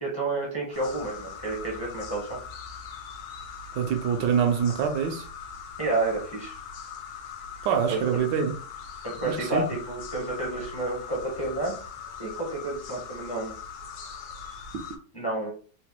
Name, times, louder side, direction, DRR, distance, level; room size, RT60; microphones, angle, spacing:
voice 1, 0.0-2.4 5.8-6.6 7.9-8.0 9.0-11.8 12.2-13.6 15.1-15.5, right 2 dB, 30° left, 0.4 m, -30 dB
sound 1, 0.7-15.0, left 6 dB, 85° left, 1.4 m, -41 dB
voice 2, 3.7-5.3 7.6-8.5 9.2-9.6, right 7 dB, 85° right, 1.3 m, -25 dB
4.0 x 2.2 x 2.9 m
omnidirectional pair, 1.9 m